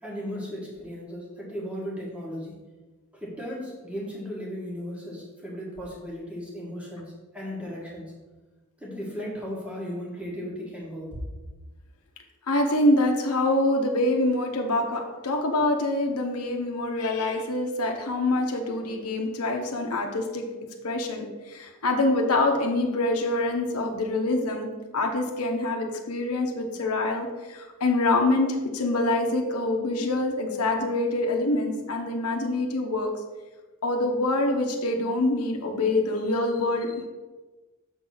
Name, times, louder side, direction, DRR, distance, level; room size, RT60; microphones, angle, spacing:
voice 1, 0.0-2.5 3.1-8.1 8.8-11.2, equal, 5° right, -4 dB, 1.7 m, -36 dB
voice 2, 12.5-20.5 20.8-33.1 33.8-37.1, left 2 dB, 90° left, 3 dB, 1.0 m, -25 dB
7.2 x 4.0 x 5.9 m, 1.2 s
head